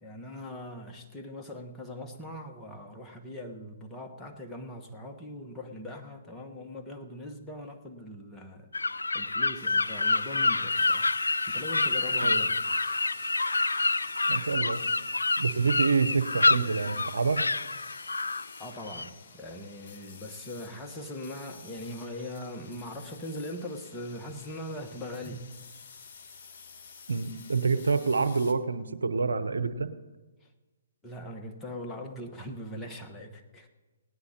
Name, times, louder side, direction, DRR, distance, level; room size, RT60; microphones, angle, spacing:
voice 1, 0.0-8.7 9.1-11.1 11.5-12.6 18.6-25.5 31.0-33.7, left 1 dB, 10° left, 1 dB, 1.2 m, -41 dB
sound 1, 8.7-19.1, left 3 dB, 85° left, 0.4 m, -27 dB
sound 2, 9.5-28.5, left 6 dB, 45° left, 1.6 m, -50 dB
voice 2, 14.3-14.8 15.4-17.4 27.1-29.9, right 4 dB, 80° right, 12 dB, 0.8 m, -27 dB
18.0 x 9.5 x 4.3 m, 1.2 s
figure-of-eight pair, 135°, 0 cm